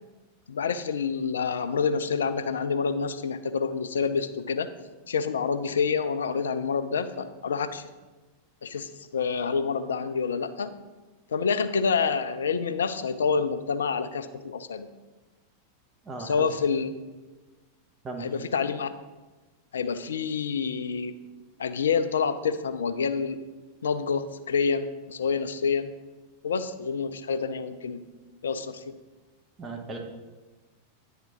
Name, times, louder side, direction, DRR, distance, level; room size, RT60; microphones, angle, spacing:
voice 1, 0.5-4.7 5.1-7.9 8.6-10.8 11.3-14.9 16.2-16.9 18.2-18.9 19.7-21.2 21.6-23.4 23.8-25.9 26.4-28.1 28.4-28.9, left 5 dB, 65° left, 11 dB, 0.4 m, -27 dB
voice 2, 16.0-16.5 18.0-18.3 29.6-30.0, right 3 dB, 25° right, 2 dB, 1.1 m, -36 dB
9.4 x 3.7 x 4.3 m, 1.2 s
figure-of-eight pair, 90°, 0 cm